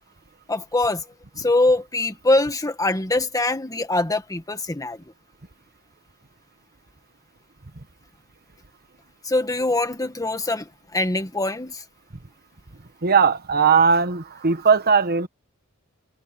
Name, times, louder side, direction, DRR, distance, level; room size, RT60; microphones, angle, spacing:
voice 1, 0.5-1.0 1.4-5.0 9.2-11.8, left 2 dB, 15° left, 1.7 m, -23 dB
voice 2, 13.0-15.3, right 5 dB, 45° right, 1.3 m, -18 dB
head